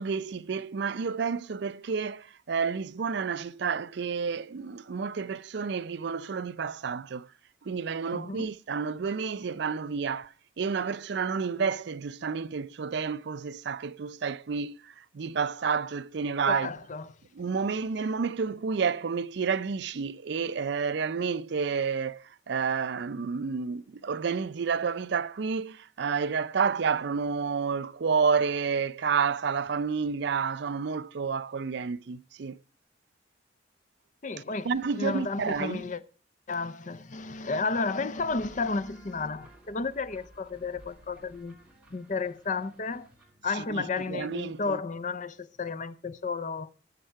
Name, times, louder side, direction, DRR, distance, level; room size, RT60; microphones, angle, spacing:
voice 1, 0.0-7.2 7.7-10.3 10.6-14.8 15.1-16.7 17.4-32.6 34.6-35.8 43.6-44.8, right 5 dB, 65° right, 0.4 m, -30 dB
voice 2, 8.1-8.5 16.5-17.1 34.2-36.0 36.5-41.5 41.9-43.1 43.4-46.7, left 4 dB, 40° left, 0.6 m, -32 dB
sound 1, 38.1-45.5, right 1 dB, 5° right, 2.9 m, -56 dB
19.0 x 6.6 x 4.6 m
head